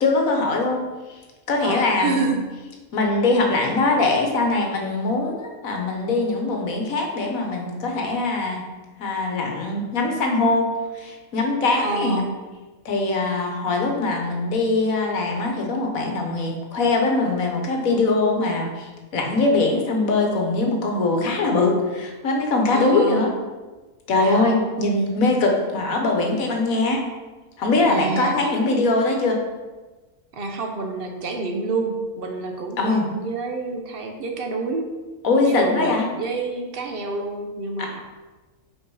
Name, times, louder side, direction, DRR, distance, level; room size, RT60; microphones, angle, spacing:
voice 1, 0.0-0.8 1.1-1.2 1.5-2.3 2.9-8.6 9.0-10.7 10.9-12.2 12.8-23.3 24.1-27.0 27.6-29.4 32.8-33.1 35.2-36.1 37.8-37.9, left 3 dB, 65° left, 1 dB, 1.5 m, -22 dB
voice 2, 1.6-2.4 11.8-12.3 22.7-23.3 24.2-24.6 27.8-28.4 30.3-34.8 35.4-38.0, right 3 dB, 45° right, 3 dB, 0.9 m, -28 dB
5.7 x 4.6 x 4.8 m, 1.2 s
omnidirectional pair, 1.6 m